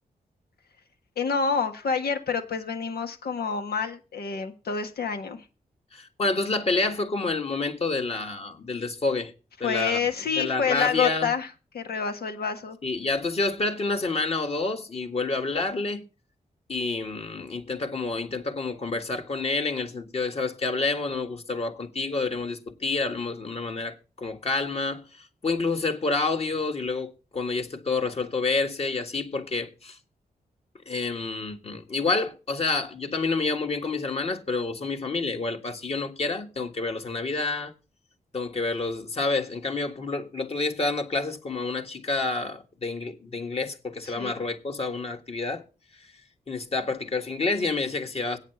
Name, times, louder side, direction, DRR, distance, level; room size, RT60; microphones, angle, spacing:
voice 1, 1.2-5.4 9.6-11.5 11.7-12.8 44.1-44.3, left 6 dB, 90° left, 1.5 m, -28 dB
voice 2, 5.9-9.3 9.6-10.0 10.4-11.3 12.8-16.0 16.7-30.0 30.9-37.7 38.3-45.6 46.5-48.4, left 3 dB, 40° left, 1.6 m, -28 dB
8.9 x 6.5 x 7.7 m
wide cardioid pair, 170°, 16 cm